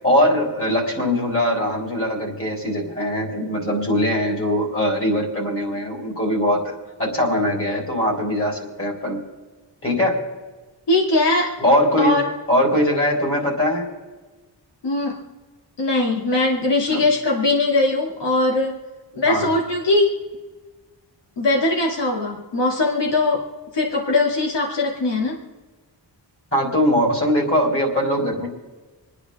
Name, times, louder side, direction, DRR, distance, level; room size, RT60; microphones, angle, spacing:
voice 1, 0.0-9.2 9.8-10.2 11.6-12.2 12.5-13.9 16.9-17.0 19.3-19.5 26.5-28.5, left 1 dB, 30° left, -1 dB, 3.9 m, -21 dB
voice 2, 10.9-11.6 12.0-12.3 14.8-15.2 15.8-18.8 19.1-20.2 21.4-23.5 23.7-25.4, left 2 dB, 70° left, -1 dB, 2.6 m, -20 dB
28.0 x 9.9 x 3.6 m, 1.3 s
wide cardioid pair, 165°, 44 cm